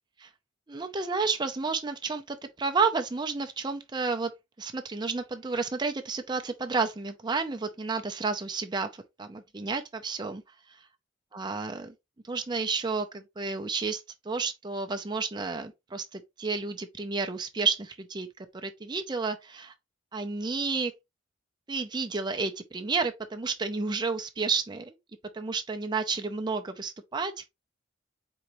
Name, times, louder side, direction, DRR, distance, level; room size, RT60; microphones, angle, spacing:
voice 1, 0.7-4.3 4.6-10.4 10.7-10.9 11.3-11.9 12.2-19.7 20.1-20.9 21.7-25.0 25.3-27.5, right 4 dB, 20° right, 0.5 m, -31 dB
4.4 x 3.9 x 3.0 m
head